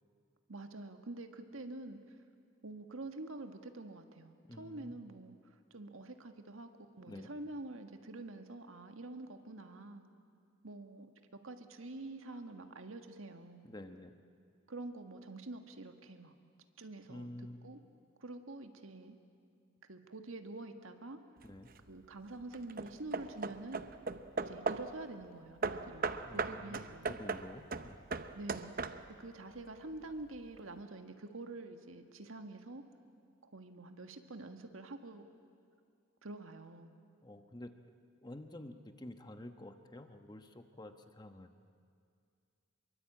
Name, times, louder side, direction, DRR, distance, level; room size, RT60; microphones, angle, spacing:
voice 1, 0.5-2.2 2.6-10.0 10.6-11.1 11.4-13.7 14.7-16.3 16.8-17.8 18.2-19.2 19.9-21.2 21.9-23.8 24.5-27.1 28.3-28.7 29.2-32.8 33.4-35.2 36.2-36.9, right 2 dB, 85° right, 6 dB, 1.7 m, -47 dB
voice 2, 4.5-4.9 7.1-7.3 13.6-14.1 17.1-17.7 21.4-21.7 26.2-28.0 37.2-37.7 38.2-41.5, left 1 dB, 20° left, 7 dB, 1.1 m, -49 dB
Hammer / Wood, 21.4-21.9 22.5-25.0 25.6-29.3, right 4 dB, 45° right, 0.8 m, -38 dB
26.5 x 23.0 x 8.7 m, 2.3 s
head